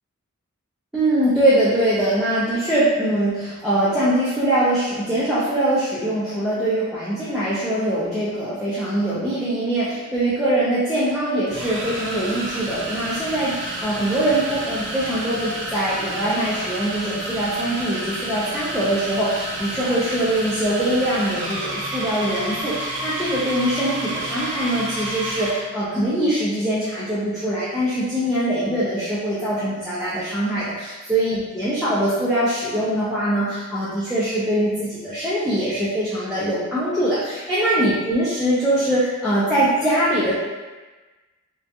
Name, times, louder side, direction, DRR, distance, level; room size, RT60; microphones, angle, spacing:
voice 1, 0.9-40.3, right 1 dB, ahead, -12 dB, 0.4 m, -22 dB
sound 1, 10.3-10.4 11.5-25.6, right 1 dB, 55° right, 0.5 m, -30 dB
2.4 x 2.2 x 2.7 m, 1.2 s
head